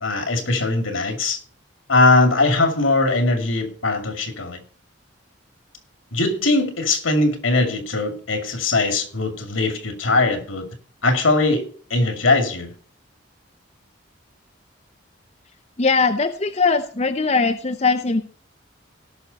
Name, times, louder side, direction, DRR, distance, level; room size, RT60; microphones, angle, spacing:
voice 1, 0.0-1.4 1.9-4.6 6.1-10.7 11.0-12.7, left 2 dB, 85° left, 2.4 m, -20 dB
voice 2, 15.8-18.2, left 4 dB, 35° left, 0.6 m, -20 dB
18.0 x 6.3 x 4.1 m
head